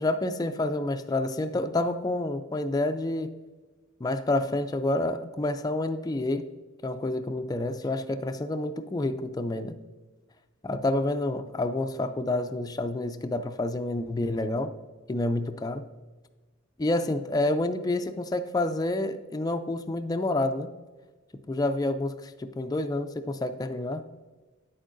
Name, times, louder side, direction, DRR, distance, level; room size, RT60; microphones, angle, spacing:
voice 1, 0.0-3.3 4.0-6.5 6.8-9.8 10.6-14.7 15.1-15.9 16.8-20.7 21.5-24.0, left 2 dB, 20° left, 8 dB, 0.3 m, -28 dB
9.8 x 8.2 x 2.6 m, 1.3 s
head